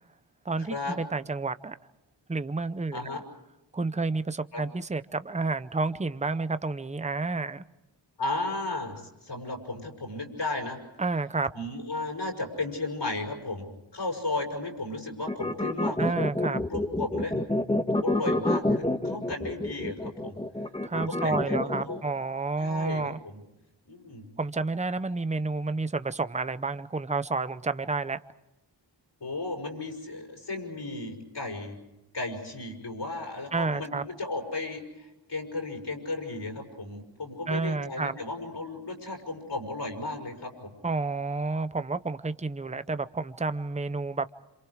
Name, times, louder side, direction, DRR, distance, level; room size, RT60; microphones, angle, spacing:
voice 1, 0.4-1.8 2.3-3.1 3.7-7.6 11.0-11.5 16.0-16.6 20.8-23.2 24.4-28.2 33.5-34.0 37.5-38.2 40.8-44.3, right 3 dB, 15° right, 13 dB, 0.7 m, -30 dB
voice 2, 8.2-8.9 9.2-10.8 11.5-16.1 16.5-17.3 18.0-20.4 20.9-22.0 22.6-23.4 23.9-24.2 29.2-31.8 32.1-40.7, left 2 dB, 65° left, 1 dB, 6.3 m, -34 dB
sound 1, 15.3-22.0, left 1 dB, 10° left, 1.5 m, -28 dB
27.5 x 27.5 x 4.9 m, 0.97 s
wide cardioid pair, 75°, 44 cm